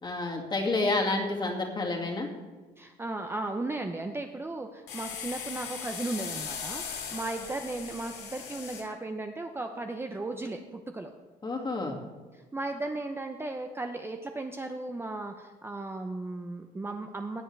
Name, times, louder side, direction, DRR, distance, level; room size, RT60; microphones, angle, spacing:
voice 1, 0.0-2.3 11.4-12.0, left 2 dB, 25° left, 0 dB, 2.1 m, -29 dB
voice 2, 2.8-11.1 12.3-17.4, right 2 dB, 15° right, 5 dB, 0.6 m, -36 dB
sound 1, 4.9-8.8, left 6 dB, 75° left, 2.3 m, -38 dB
17.0 x 7.9 x 3.3 m, 1.3 s
cardioid pair, 110°, 17 cm